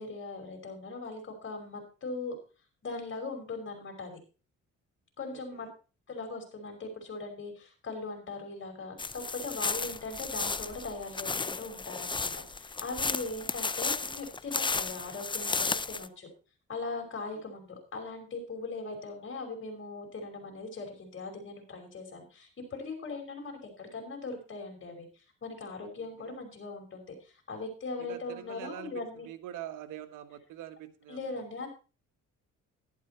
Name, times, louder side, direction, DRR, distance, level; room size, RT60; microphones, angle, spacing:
voice 1, 0.0-2.4 2.8-4.2 5.2-5.7 6.1-16.3 16.7-29.3 31.1-31.7, left 3 dB, 40° left, 3 dB, 5.4 m, -40 dB
voice 2, 5.3-5.7 17.3-17.4 26.0-26.4 28.0-31.4, right 11 dB, 90° right, 9 dB, 1.5 m, -45 dB
sound 1, 9.0-16.1, left 4 dB, 15° left, 0.6 m, -33 dB
12.0 x 11.0 x 4.4 m, 0.35 s
cardioid pair, 90°, 30 cm